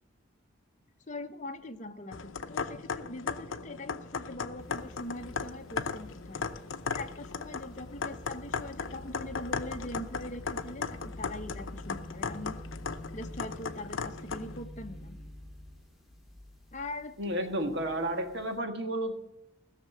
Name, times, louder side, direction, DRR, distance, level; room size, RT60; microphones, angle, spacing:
voice 1, 1.1-6.4 6.9-12.6 13.1-15.2 16.7-17.7, left 1 dB, 35° left, 6 dB, 1.0 m, -42 dB
sound 1, 2.1-14.6, left 5 dB, 70° left, 0.7 m, -37 dB
sound 2, 4.6-18.6, left 1 dB, ahead, 1.8 m, -48 dB
voice 2, 17.2-19.1, right 1 dB, 55° right, 6 dB, 1.5 m, -32 dB
16.5 x 6.7 x 8.4 m, 0.84 s
head